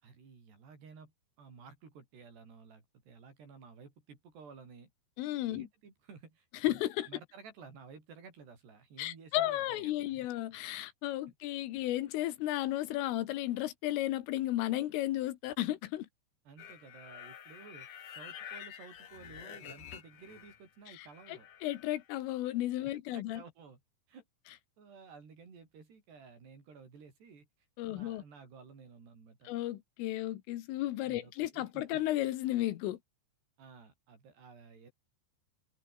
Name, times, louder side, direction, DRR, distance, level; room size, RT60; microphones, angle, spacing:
voice 1, 0.0-4.9 5.5-6.8 7.1-10.1 16.5-21.5 23.1-23.8 24.1-24.2 24.8-27.5 27.8-29.5 31.0-32.0 33.6-34.9, right 5 dB, 55° right, 7.9 m, -54 dB
voice 2, 5.2-5.7 6.6-7.1 9.0-16.1 20.9-23.4 27.8-28.2 29.5-33.0, left 15 dB, 85° left, 4.0 m, -34 dB
sound 1, 16.6-20.7 20.9-22.1, left 9 dB, 50° left, 2.7 m, -49 dB
omnidirectional pair, 5.6 m